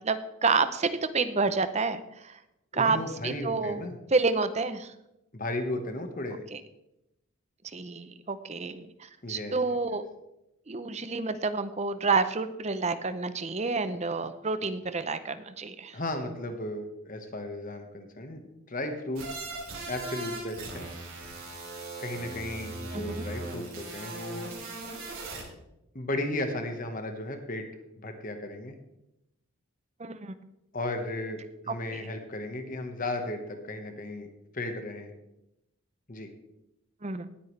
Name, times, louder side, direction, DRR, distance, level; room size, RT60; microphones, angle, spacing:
voice 1, 0.0-2.4 2.7-3.0 3.2-3.8 4.1-4.9 6.5-6.6 7.7-10.0 10.7-16.0 22.9-23.2 30.0-30.3 31.7-32.0 37.0-37.3, right 4 dB, 30° right, 12 dB, 0.6 m, -29 dB
voice 2, 2.7-4.0 5.3-6.4 9.2-9.5 15.9-18.4 18.7-19.4 19.9-20.9 22.0-24.5 25.9-27.7 28.0-28.7 30.7-34.3 34.5-35.1 36.1-36.3, left 1 dB, 40° left, 5 dB, 1.4 m, -35 dB
sound 1, 19.2-25.4, right 3 dB, 75° right, 4.4 m, -39 dB
18.5 x 8.7 x 3.3 m, 0.87 s
head